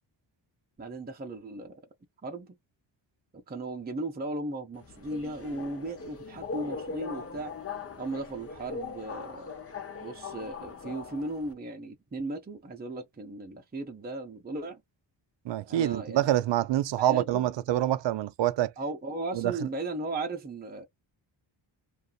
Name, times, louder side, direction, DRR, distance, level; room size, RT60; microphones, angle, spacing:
voice 1, 0.8-1.8 2.2-2.5 3.3-7.5 8.0-9.5 10.0-14.8 15.7-16.3 17.0-17.5 18.8-20.9, right 2 dB, 20° right, 0.7 m, -36 dB
Subway metro underground, 4.7-11.5, left 5 dB, 30° left, 0.7 m, -40 dB
voice 2, 15.5-18.7 19.3-19.7, right 13 dB, 65° right, 0.5 m, -26 dB
2.5 x 2.5 x 2.3 m
cardioid pair, 105°, 46 cm